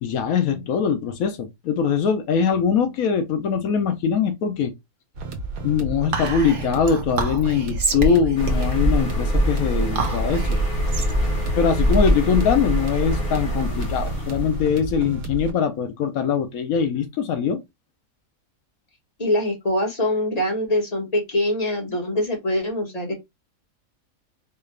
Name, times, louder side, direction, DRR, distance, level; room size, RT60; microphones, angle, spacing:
voice 1, 0.0-4.7 5.6-10.6 11.6-17.6, left 7 dB, 80° left, 1.1 m, -22 dB
sound 1, 5.2-15.5, right 3 dB, 75° right, 1.2 m, -32 dB
Whispering, 6.1-12.8, right 3 dB, 45° right, 0.9 m, -29 dB
sound 2, 8.4-14.6, equal, 45° left, 1.2 m, -23 dB
voice 2, 19.2-23.1, left 1 dB, 30° left, 1.5 m, -23 dB
4.5 x 2.4 x 3.2 m
omnidirectional pair, 1.5 m